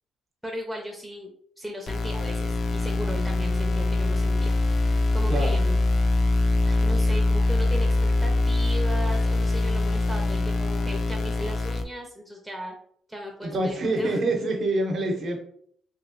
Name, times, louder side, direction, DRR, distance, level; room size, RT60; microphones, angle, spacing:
voice 1, 0.4-1.3 1.6-5.8 6.6-12.7 13.1-14.2, equal, 5° right, 1 dB, 0.5 m, -37 dB
sound 1, 1.9-11.8, left 2 dB, 55° left, 0.3 m, -23 dB
voice 2, 13.4-15.4, right 2 dB, 55° right, 3 dB, 0.8 m, -26 dB
3.0 x 2.8 x 2.5 m, 0.63 s
cardioid pair, 90°, 0 cm